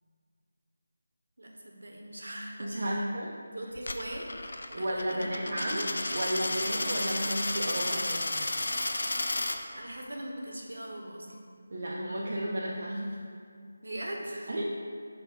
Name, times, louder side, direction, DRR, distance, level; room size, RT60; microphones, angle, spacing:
voice 1, 1.4-3.0 3.5-5.3 9.7-11.3 13.8-14.5, right 1 dB, 75° right, 1 dB, 1.1 m, -41 dB
voice 2, 2.6-3.3 4.8-8.4 11.7-13.2 14.5-14.6, right 1 dB, 60° right, -3 dB, 0.6 m, -33 dB
Coin (dropping), 3.8-9.6, left 2 dB, 70° left, 0.5 m, -32 dB
sound 1, 5.1-10.0, equal, 30° left, 1.1 m, -45 dB
5.2 x 4.2 x 5.1 m, 2.2 s
figure-of-eight pair, 160°, 0 cm